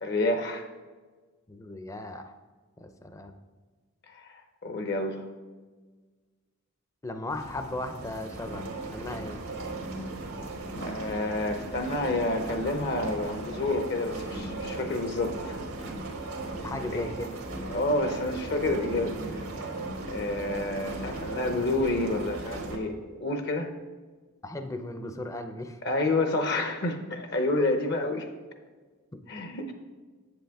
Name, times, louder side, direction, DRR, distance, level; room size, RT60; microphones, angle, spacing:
voice 1, 0.0-0.7 4.1-5.2 10.8-15.9 16.9-17.1 17.7-19.4 20.0-23.7 25.8-28.3 29.3-29.7, left 2 dB, 50° left, 6 dB, 0.7 m, -29 dB
voice 2, 1.5-2.3 2.8-3.3 7.0-9.4 16.6-17.4 24.4-25.8 29.1-29.3, left 1 dB, 15° left, 7 dB, 0.5 m, -37 dB
sound 1, 7.3-22.8, right 2 dB, 90° right, 1.5 m, -37 dB
7.8 x 7.8 x 3.5 m, 1.4 s
head